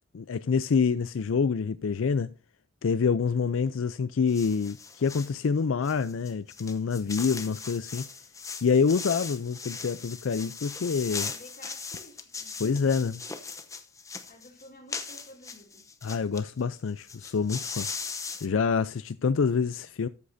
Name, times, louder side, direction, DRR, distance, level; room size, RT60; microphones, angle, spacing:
voice 1, 0.1-2.3 2.8-8.1 8.6-11.3 12.6-13.2 16.0-17.9 18.4-20.1, left 5 dB, 85° left, 0.4 m, -27 dB
sound 1, 4.3-5.4 5.8-16.4 16.7-16.8 17.0-18.5, left 5 dB, 15° left, 0.8 m, -39 dB
voice 2, 11.1-12.7 14.3-15.9, left 1 dB, 45° left, 3.1 m, -52 dB
13.5 x 8.3 x 2.7 m
head